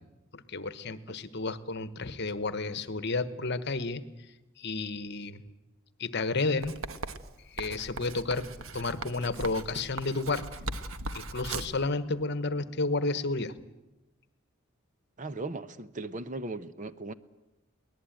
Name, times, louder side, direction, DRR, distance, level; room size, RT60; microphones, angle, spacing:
voice 1, 0.3-4.0 4.6-5.4 6.0-6.8 7.5-8.5 8.7-10.5 11.1-13.5, left 3 dB, 50° left, 1.2 m, -31 dB
Writing, 6.6-11.8, right 3 dB, 80° right, 1.2 m, -39 dB
voice 2, 15.2-17.1, right 2 dB, 35° right, 0.8 m, -37 dB
23.5 x 19.0 x 9.1 m
head